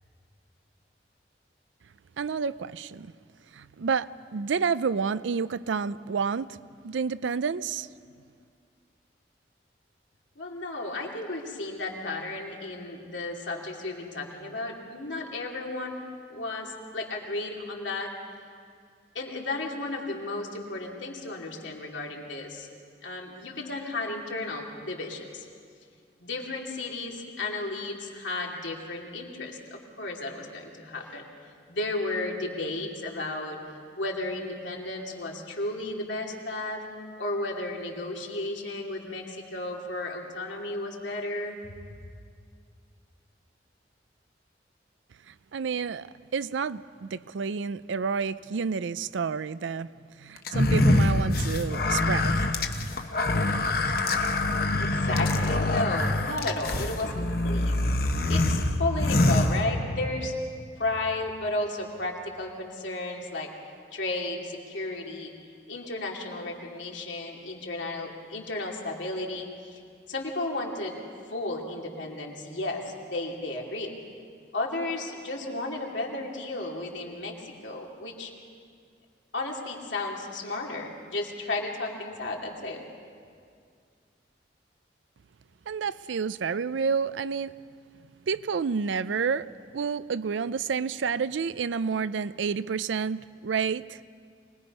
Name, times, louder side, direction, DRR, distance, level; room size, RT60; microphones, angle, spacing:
voice 1, 2.2-3.1 3.5-6.6 6.8-7.9 45.3-46.1 46.3-49.9 50.2-52.5 85.7-87.5 88.3-89.5 89.7-94.0, right 5 dB, 90° right, 0.5 m, -29 dB
voice 2, 10.4-16.0 16.3-18.1 19.1-22.7 23.0-25.4 26.2-31.3 31.7-33.6 34.0-36.8 37.2-41.7 54.8-57.8 58.3-60.3 60.8-63.5 63.9-65.3 65.7-69.8 70.1-71.0 71.3-74.0 74.5-78.3 79.3-82.8, left 2 dB, 90° left, 2.7 m, -33 dB
sound 1, 50.5-60.1, left 2 dB, 55° left, 1.0 m, -25 dB
24.5 x 20.0 x 5.4 m
head